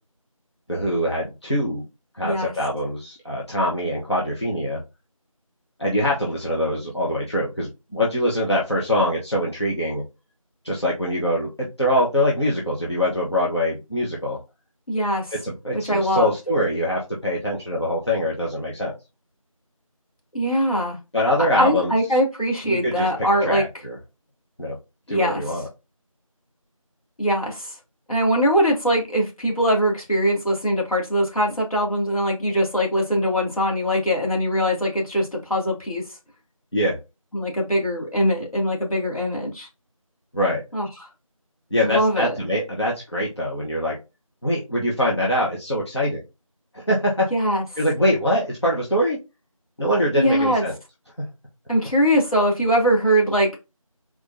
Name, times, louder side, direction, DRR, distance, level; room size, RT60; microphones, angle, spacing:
voice 1, 0.7-1.8 2.1-4.8 5.8-10.0 10.6-14.4 15.4-18.9 21.1-21.9 22.6-23.9 24.6-24.8 25.1-25.6 36.7-37.0 40.3-40.6 41.7-44.0 44.4-46.2 46.7-47.3 47.8-49.2 49.8-50.7, equal, 50° left, 1.2 m, -23 dB
voice 2, 2.2-2.5 14.9-15.3 15.8-16.3 20.3-21.0 21.6-23.6 25.1-25.6 27.2-27.8 28.1-36.0 37.3-39.7 40.7-40.9 41.8-42.4 47.3-47.6 50.1-50.6 51.7-53.6, equal, 75° left, 2.4 m, -22 dB
4.4 x 4.3 x 2.7 m
figure-of-eight pair, 180°, 18 cm